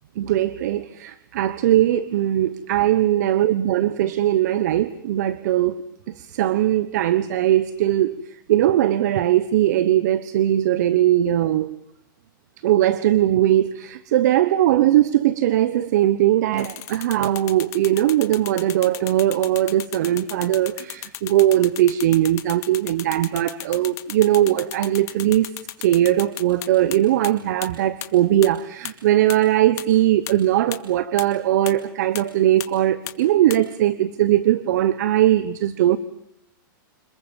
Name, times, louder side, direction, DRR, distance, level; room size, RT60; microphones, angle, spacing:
voice 1, 0.2-5.8 6.1-8.2 8.5-11.7 12.6-25.5 25.8-36.0, right 13 dB, 50° right, 1.1 m, -20 dB
sound 1, 16.6-27.0 27.2-27.3 27.6-27.7 28.0-28.1 28.4-28.5 28.8-28.9 29.3-29.4 29.8-29.9 30.3-30.4 30.7-30.8 31.2-31.3 31.7-31.8 32.1-32.2 32.6-32.7 33.1-33.2 33.5-33.6, left 15 dB, 25° left, 2.2 m, -33 dB
27.0 x 22.0 x 7.4 m
hypercardioid pair, 160°, 11 cm